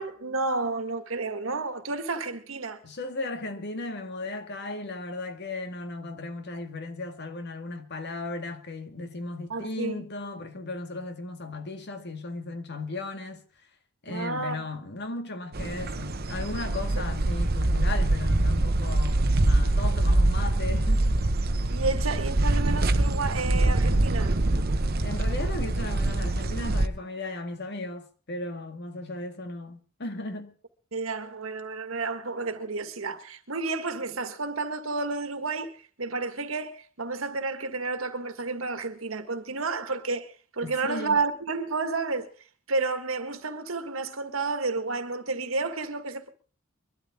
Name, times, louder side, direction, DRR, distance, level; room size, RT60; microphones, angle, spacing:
voice 1, 0.0-2.8 9.5-10.0 14.1-14.6 21.7-24.4 30.9-42.3 42.7-46.3, right 3 dB, 90° right, 1.7 m, -31 dB
voice 2, 2.8-13.4 14.0-21.2 25.0-30.6 40.6-41.2, left 2 dB, 55° left, 2.0 m, -36 dB
sound 1, 15.5-26.9, right 2 dB, 50° right, 0.9 m, -24 dB
23.0 x 12.5 x 3.6 m
head